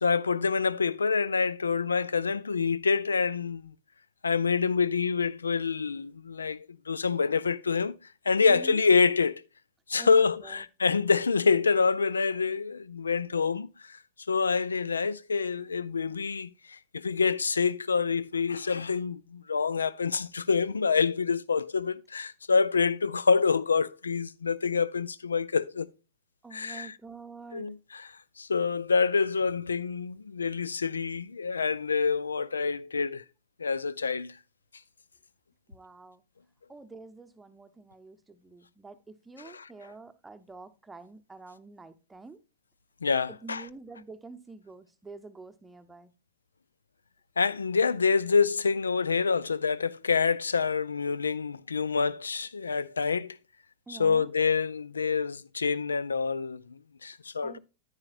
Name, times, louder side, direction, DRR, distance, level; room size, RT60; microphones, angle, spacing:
voice 1, 0.0-3.7 4.2-7.9 8.3-9.4 9.9-14.0 14.3-25.9 26.5-26.9 27.5-28.1 28.4-33.2 33.6-34.4 39.5-39.7 43.0-43.6 47.4-53.4 53.9-57.6, left 5 dB, 75° left, 0.4 m, -27 dB
voice 2, 8.4-8.8 10.0-10.6 26.4-27.8 35.7-36.2 36.7-42.4 43.3-46.1 53.9-54.3 57.4-57.6, right 3 dB, 10° right, 0.9 m, -47 dB
10.5 x 9.7 x 2.5 m
figure-of-eight pair, 90°, 0 cm